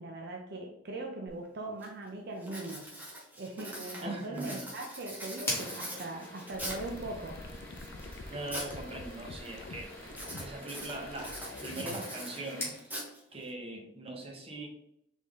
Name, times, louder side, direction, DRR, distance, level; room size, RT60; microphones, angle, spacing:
voice 1, 0.0-2.9 3.4-7.4, right 2 dB, 60° right, 2 dB, 0.6 m, -40 dB
Writing, 1.3-1.4 1.8-2.1 2.4-7.0 7.5-8.8 9.1-9.5 10.1-13.5, right 1 dB, 10° right, 1.2 m, -43 dB
voice 2, 4.0-4.7 8.3-10.1 10.4-12.8 13.3-14.7, right 2 dB, 30° right, 1 dB, 1.0 m, -41 dB
sound 1, 5.4-12.8, left 1 dB, 15° left, 1.6 m, -43 dB
sound 2, 6.5-12.1, left 3 dB, 65° left, 0.5 m, -46 dB
4.2 x 3.5 x 3.5 m, 0.75 s
head